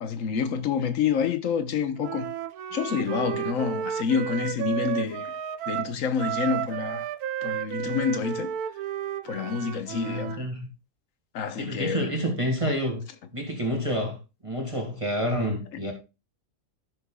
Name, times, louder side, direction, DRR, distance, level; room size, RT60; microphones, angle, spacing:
voice 1, 0.0-2.3 2.7-5.3 5.7-7.1 7.4-8.5 9.2-10.4 11.3-12.0, left 6 dB, 60° left, 1.4 m, -28 dB
Wind instrument woodwind instrument, 2.0-10.4, right 11 dB, 75° right, 1.1 m, -32 dB
voice 2, 9.9-10.7 11.5-13.0 13.3-14.2 14.4-15.9, equal, 20° right, 1.9 m, -28 dB
15.5 x 6.6 x 2.3 m
omnidirectional pair, 1.6 m